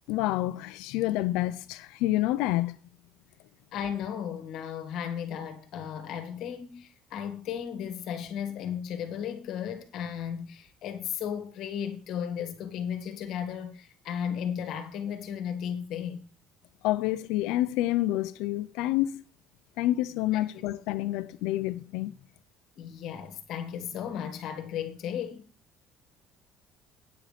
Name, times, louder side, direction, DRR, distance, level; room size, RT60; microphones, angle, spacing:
voice 1, 0.1-2.8 16.8-19.2 19.8-22.1, left 15 dB, 80° left, 0.6 m, -28 dB
voice 2, 3.7-16.2 22.8-25.4, left 8 dB, 50° left, 1.8 m, -35 dB
9.3 x 7.6 x 5.2 m
cardioid pair, 170°, 0 cm